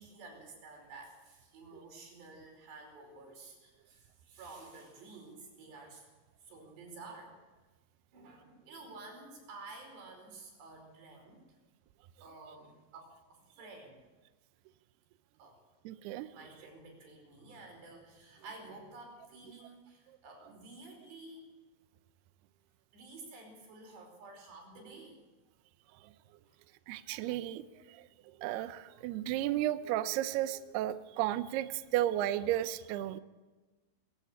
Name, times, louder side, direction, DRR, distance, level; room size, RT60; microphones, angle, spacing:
voice 1, 0.0-6.1 6.4-7.4 8.1-11.4 12.2-14.0 15.4-15.6 16.3-21.5 22.9-25.2 26.4-26.6, right 3 dB, 65° right, 2 dB, 6.9 m, -51 dB
voice 2, 15.9-16.3 26.9-27.6 27.9-28.0 28.4-33.2, right 13 dB, 80° right, 12 dB, 2.4 m, -33 dB
21.5 x 15.0 x 8.6 m, 1.2 s
omnidirectional pair, 5.5 m